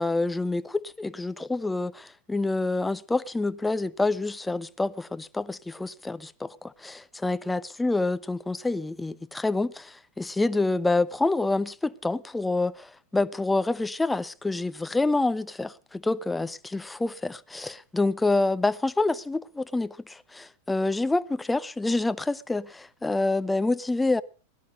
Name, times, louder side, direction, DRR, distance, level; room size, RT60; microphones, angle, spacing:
voice 1, 0.0-24.2, left 2 dB, 5° left, 0.6 m, -27 dB
18.5 x 11.5 x 5.2 m
figure-of-eight pair, 90°, 0 cm